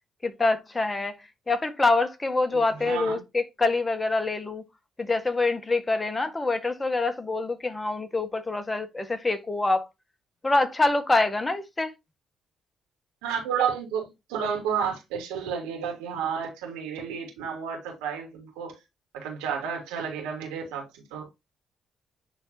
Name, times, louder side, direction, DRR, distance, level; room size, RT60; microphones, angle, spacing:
voice 1, 0.2-4.6 5.0-9.9 10.4-11.9, left 3 dB, 25° left, 1.5 m, -25 dB
voice 2, 2.8-3.2 13.2-18.8 19.1-21.3, right 7 dB, 80° right, 2.6 m, -31 dB
10.5 x 3.8 x 2.8 m
hypercardioid pair, 45°, 0 cm